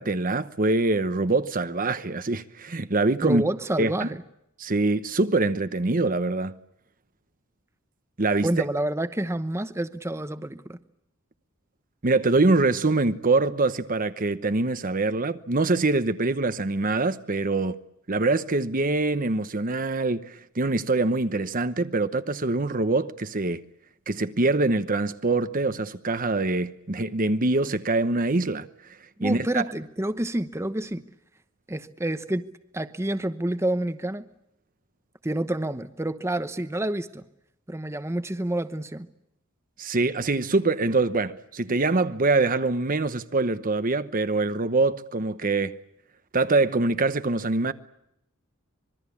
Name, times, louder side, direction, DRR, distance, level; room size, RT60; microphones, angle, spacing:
voice 1, 0.0-3.4 3.8-4.1 4.6-6.5 8.2-8.5 12.0-17.7 18.1-23.6 24.1-28.7 29.2-29.7 39.8-45.8 46.3-47.7, right 3 dB, 40° right, 1.0 m, -24 dB
voice 2, 3.2-4.2 8.4-10.8 29.2-31.0 31.7-34.3 35.2-37.2 37.7-39.1, right 1 dB, 15° right, 1.0 m, -28 dB
25.5 x 22.5 x 8.5 m
head